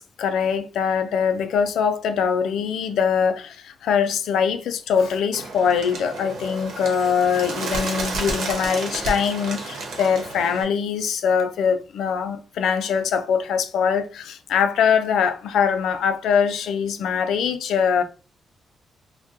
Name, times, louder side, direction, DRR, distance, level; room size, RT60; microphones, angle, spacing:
voice 1, 0.0-18.0, left 7 dB, 80° left, 0.4 m, -22 dB
Bird, 5.3-10.6, right 2 dB, 70° right, 0.9 m, -31 dB
3.6 x 2.2 x 2.6 m
wide cardioid pair, 165°, 0 cm